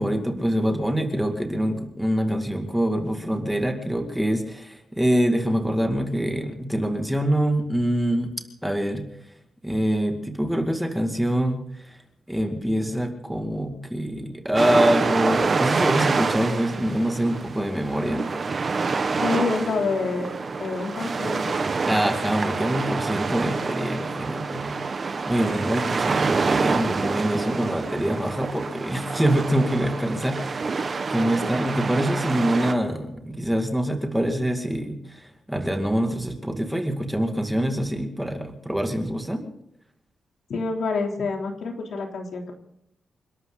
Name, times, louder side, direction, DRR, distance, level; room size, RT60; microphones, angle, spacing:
voice 1, 0.0-8.3 8.6-9.1 9.6-12.0 12.3-18.3 21.9-39.4, right 1 dB, 5° right, 4 dB, 2.3 m, -25 dB
sound 1, 14.6-32.7, right 4 dB, 40° right, 1.4 m, -27 dB
voice 2, 19.2-20.3 20.6-21.6 40.5-42.5, left 4 dB, 70° left, 2 dB, 3.2 m, -27 dB
29.0 x 12.5 x 4.0 m, 0.78 s
wide cardioid pair, 140°, 0 cm